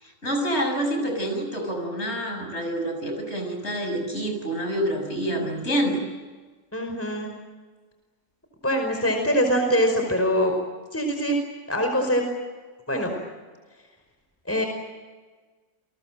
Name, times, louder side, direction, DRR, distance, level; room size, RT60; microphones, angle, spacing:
voice 1, 0.0-6.0, right 1 dB, 35° left, 4 dB, 6.9 m, -27 dB
voice 2, 6.7-7.3 8.6-10.5 10.9-11.4 11.7-12.2 12.9-13.2 14.5-14.7, equal, 5° left, 4 dB, 5.2 m, -23 dB
29.5 x 23.0 x 7.7 m, 1.4 s
omnidirectional pair, 2.0 m